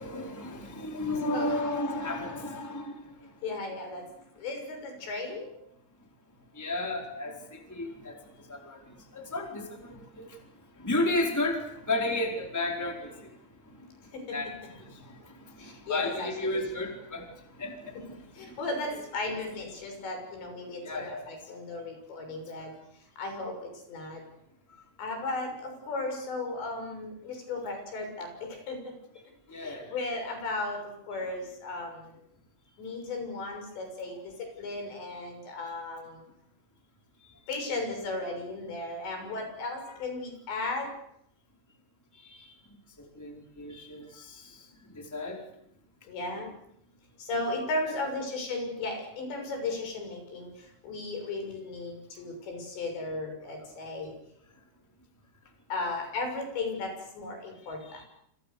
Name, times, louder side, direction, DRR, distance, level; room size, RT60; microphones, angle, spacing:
voice 1, 0.0-3.3 6.5-10.4 10.8-13.3 13.7-18.6 20.8-21.3 22.6-22.7 29.5-29.9 39.9-40.0 42.2-42.5 43.0-44.7 44.9-45.4 55.7-56.0 57.8-58.0, left 2 dB, 5° left, 2 dB, 3.9 m, -34 dB
voice 2, 3.4-4.0 4.4-5.6 14.1-14.4 15.6-16.3 16.5-16.7 18.4-22.7 23.2-24.2 25.0-28.9 29.5-30.8 31.1-32.2 32.8-36.2 37.5-40.9 46.1-46.5 47.2-54.2 55.7-58.0, left 2 dB, 80° left, 4 dB, 8.7 m, -35 dB
28.5 x 27.5 x 6.9 m, 0.74 s
omnidirectional pair, 5.0 m